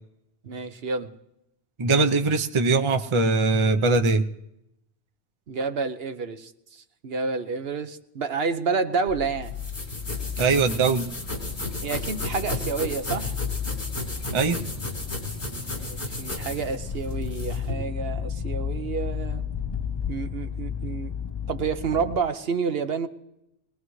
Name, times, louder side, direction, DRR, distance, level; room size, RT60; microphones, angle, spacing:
voice 1, 0.4-1.1 5.5-9.5 11.8-13.3 15.8-19.4 20.1-21.1 21.5-23.1, right 5 dB, 65° right, 8 dB, 1.1 m, -29 dB
voice 2, 1.8-4.2 10.4-11.1 14.3-14.6, right 3 dB, 30° right, 6 dB, 0.6 m, -21 dB
sound 1, 9.1-22.2, left 7 dB, 30° left, 0.5 m, -33 dB
sound 2, 9.4-17.7, left 1 dB, 80° left, 4.0 m, -34 dB
22.5 x 19.5 x 3.2 m, 0.83 s
omnidirectional pair, 1.1 m